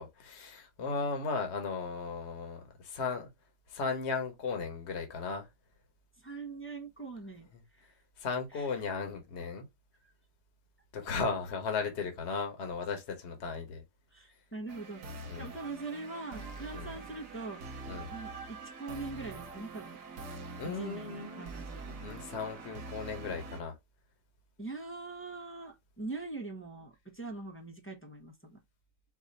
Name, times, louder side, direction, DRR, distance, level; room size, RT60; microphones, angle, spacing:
voice 1, 0.0-3.3 3.7-5.5 7.5-7.6 8.2-9.6 10.9-13.8 15.2-15.5 16.7-16.9 17.9-18.1 20.6-21.5 22.0-23.7, left 4 dB, 45° left, 1.4 m, -36 dB
voice 2, 6.2-7.5 8.5-8.7 14.1-15.0 15.4-17.6 18.1-20.0 20.6-21.8 24.6-28.6, right 3 dB, 10° left, 0.7 m, -42 dB
sound 1, 14.7-23.6, right 3 dB, 70° right, 1.5 m, -45 dB
4.9 x 2.7 x 4.0 m
omnidirectional pair, 1.8 m